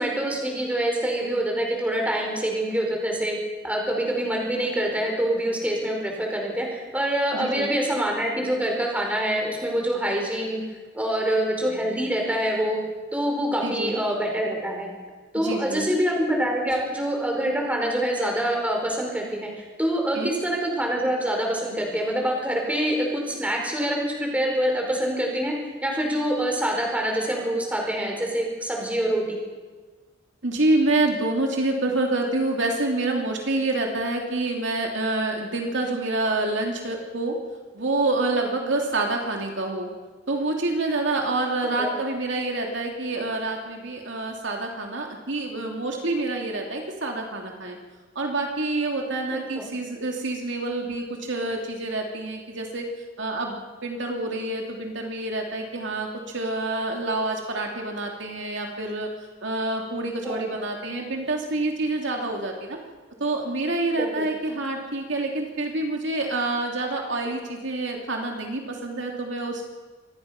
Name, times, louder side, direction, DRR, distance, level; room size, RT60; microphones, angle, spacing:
voice 1, 0.0-3.3 3.6-10.6 10.9-12.8 13.1-14.9 15.3-25.5 25.8-29.4 41.8-41.9 49.3-49.6 60.2-60.5 63.9-64.2, right 1 dB, 5° right, 0 dB, 5.1 m, -25 dB
voice 2, 7.3-7.7 13.6-14.0 15.3-15.9 20.1-20.3 30.4-37.4 37.7-39.9 40.3-47.8 48.1-52.9 53.2-56.1 56.3-59.1 59.4-62.8 63.2-69.7, right 2 dB, 65° right, 1 dB, 2.9 m, -27 dB
26.0 x 19.5 x 6.0 m, 1.4 s
head